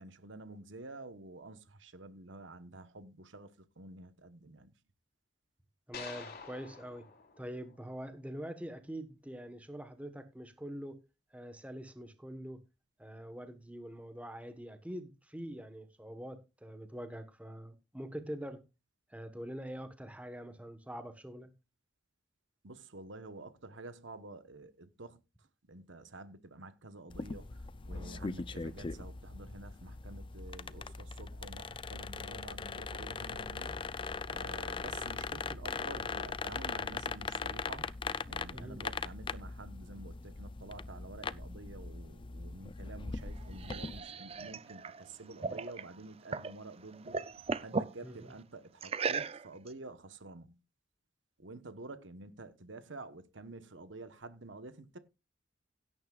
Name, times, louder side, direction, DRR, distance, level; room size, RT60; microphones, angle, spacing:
voice 1, 0.0-4.7 22.6-33.8 34.3-37.9 38.3-47.3 47.6-50.6 51.4-55.0, right 2 dB, 75° right, 1.2 m, -49 dB
sound 1, 5.9-8.3, left 5 dB, 55° left, 3.0 m, -49 dB
voice 2, 5.9-7.0 7.4-11.0 11.3-12.6 13.0-18.6 19.1-21.5 38.5-38.8 48.0-48.3, equal, 5° right, 1.3 m, -44 dB
sound 2, 27.1-44.0, left 4 dB, 25° left, 0.4 m, -40 dB
sound 3, 43.2-46.6 46.9-47.9 48.8-49.7, right 4 dB, 30° right, 0.5 m, -37 dB
16.5 x 9.7 x 2.4 m
head